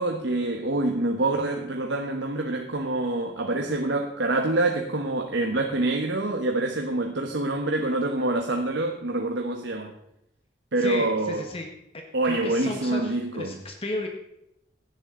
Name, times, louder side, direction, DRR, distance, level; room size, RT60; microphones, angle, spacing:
voice 1, 0.0-9.9 10.7-11.5 12.1-13.6, right 2 dB, 80° right, 2 dB, 1.2 m, -26 dB
voice 2, 10.8-11.7 11.9-14.1, left 2 dB, 30° left, 3 dB, 1.3 m, -34 dB
16.5 x 10.0 x 3.8 m, 0.82 s
head